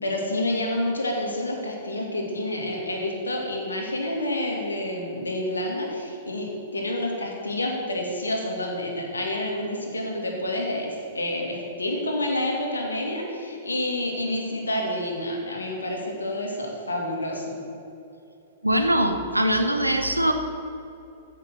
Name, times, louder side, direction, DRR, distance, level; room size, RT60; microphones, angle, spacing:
voice 1, 0.0-17.6, left 1 dB, 75° left, 0 dB, 2.2 m, -28 dB
voice 2, 18.6-20.3, right 1 dB, 90° right, 6 dB, 1.0 m, -22 dB
14.0 x 5.9 x 6.3 m, 2.8 s
figure-of-eight pair, 105°, 0 cm